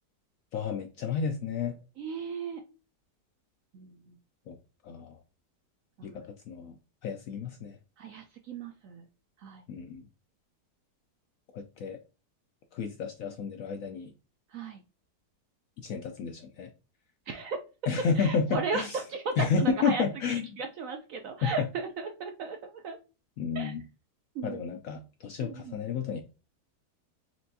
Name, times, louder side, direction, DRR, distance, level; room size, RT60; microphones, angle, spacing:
voice 1, 0.5-1.7 4.5-4.6 4.8-5.2 6.0-6.8 7.0-7.8 9.7-10.0 11.5-12.0 12.7-14.1 15.8-16.7 17.9-19.0 19.4-20.5 21.4-21.7 23.4-23.8 24.4-26.2, left 6 dB, 70° left, 5 dB, 0.8 m, -31 dB
voice 2, 2.0-2.6 3.7-4.2 6.0-6.1 8.0-9.0 9.4-9.6 14.5-14.8 17.3-17.6 18.1-23.0 23.5-23.7 24.3-24.6 25.4-25.8, right 4 dB, 70° right, 5 dB, 0.8 m, -36 dB
4.5 x 3.3 x 2.7 m, 0.32 s
omnidirectional pair, 1.8 m